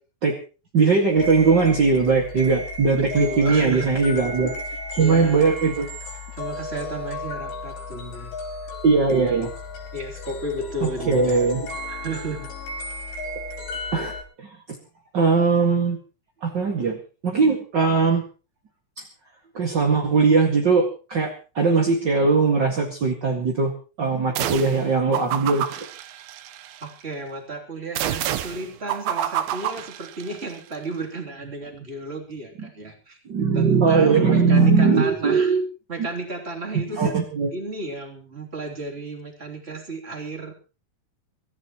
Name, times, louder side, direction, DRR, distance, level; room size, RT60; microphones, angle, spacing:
voice 1, 0.7-4.6 5.0-5.9 8.8-9.5 10.8-11.7 13.9-14.8 15.1-16.0 16.4-17.0 17.2-18.3 19.0-19.1 19.5-25.7 32.6-32.7 33.3-35.6 36.7-37.5, right 4 dB, 40° right, 0 dB, 1.8 m, -20 dB
sound 1, 1.2-14.2, left 2 dB, 85° left, 7.9 m, -34 dB
voice 2, 3.0-3.9 5.0-5.5 6.4-8.3 8.6-8.7 9.9-11.4 11.9-12.5 26.8-33.2 33.5-35.5 35.9-37.2 37.5-40.5, right 2 dB, 15° right, 1 dB, 2.9 m, -33 dB
sound 2, 24.4-24.8 25.1-26.9 28.0-30.6, right 11 dB, 75° right, 2.6 m, -28 dB
26.0 x 15.0 x 3.1 m, 0.35 s
omnidirectional pair, 4.8 m